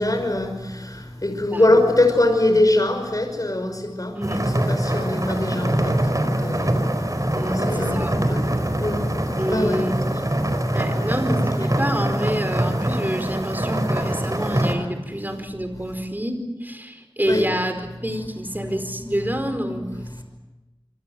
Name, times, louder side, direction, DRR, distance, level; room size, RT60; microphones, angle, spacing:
voice 1, 0.0-11.1 17.3-17.5 20.1-20.2, left 1 dB, 40° left, 5 dB, 5.8 m, -23 dB
sound 1, 4.2-14.7, right 1 dB, 40° right, 5.0 m, -23 dB
voice 2, 7.3-8.1 9.4-9.9 10.7-20.2, equal, 20° right, 7 dB, 4.7 m, -28 dB
27.0 x 25.0 x 7.8 m, 1.1 s
wide cardioid pair, 40°, 9 cm